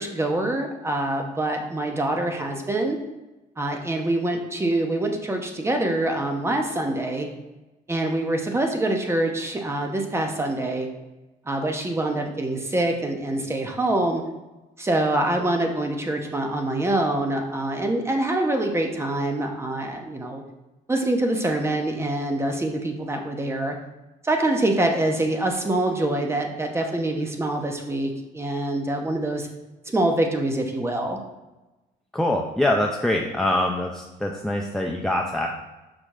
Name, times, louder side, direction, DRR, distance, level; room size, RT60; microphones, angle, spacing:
voice 1, 0.0-3.0 3.6-7.3 7.9-10.9 11.5-14.2 14.8-20.4 20.9-23.7 24.2-29.5 29.8-31.2, right 1 dB, 15° right, 3 dB, 1.0 m, -25 dB
voice 2, 32.1-35.5, left 1 dB, 5° left, 0 dB, 0.5 m, -24 dB
5.9 x 5.1 x 3.7 m, 1.1 s
cardioid pair, 110°, 17 cm